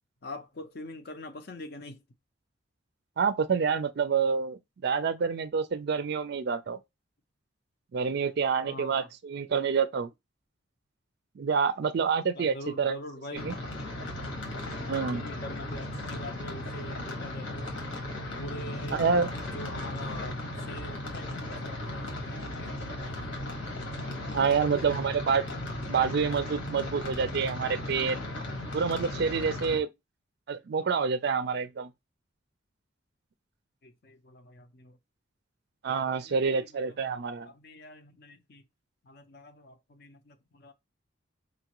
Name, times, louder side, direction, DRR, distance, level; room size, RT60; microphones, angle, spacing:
voice 1, 0.2-2.0 8.6-9.1 12.3-13.6 15.1-17.8 18.4-19.0 19.5-23.2 24.6-25.0 33.8-35.0 36.2-37.0 37.4-38.6 39.0-40.7, left 1 dB, 50° left, 0.6 m, -44 dB
voice 2, 3.2-6.8 7.9-10.1 11.4-13.0 13.4-13.5 14.9-15.2 18.9-19.3 24.3-25.4 25.9-28.2 28.7-29.9 30.5-31.9 35.8-37.5, right 5 dB, 55° right, 0.4 m, -27 dB
sound 1, 13.3-29.8, left 1 dB, 75° left, 1.4 m, -36 dB
5.0 x 2.4 x 2.9 m
head